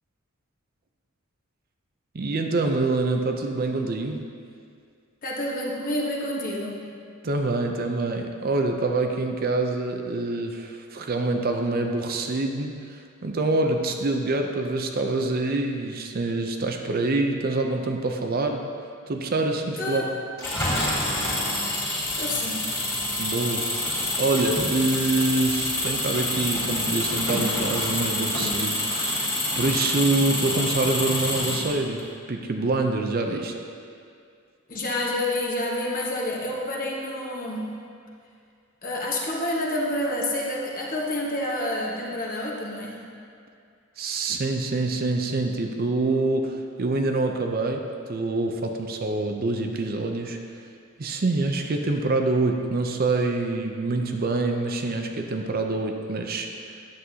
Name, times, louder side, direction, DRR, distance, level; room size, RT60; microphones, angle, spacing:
voice 1, 2.1-4.2 7.2-18.7 19.1-20.0 23.2-33.5 44.0-47.8 48.1-50.4 51.0-56.7, right 2 dB, 45° right, 4 dB, 0.5 m, -26 dB
voice 2, 5.2-6.9 19.8-20.1 22.2-22.7 34.7-37.7 38.8-43.0, left 1 dB, 40° left, -3 dB, 1.2 m, -28 dB
Engine, 20.4-32.0, left 1 dB, 15° left, 2.1 m, -27 dB
10.0 x 7.7 x 2.8 m, 2.3 s
head